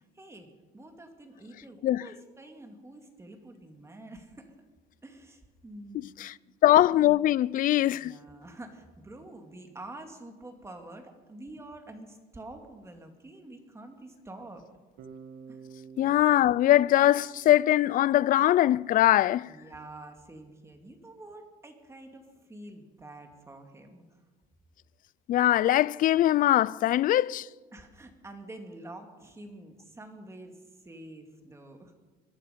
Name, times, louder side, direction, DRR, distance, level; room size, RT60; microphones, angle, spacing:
voice 1, 0.0-4.5 5.0-6.1 7.9-14.6 15.5-15.6 19.5-24.2 27.7-31.9, right 2 dB, 15° right, 2.3 m, -47 dB
voice 2, 6.6-8.2 16.0-19.5 25.3-27.5, left 13 dB, 55° left, 0.4 m, -22 dB
Bass guitar, 15.0-19.0, right 6 dB, 65° right, 1.6 m, -50 dB
22.0 x 12.0 x 5.2 m
cardioid pair, 110°, 17 cm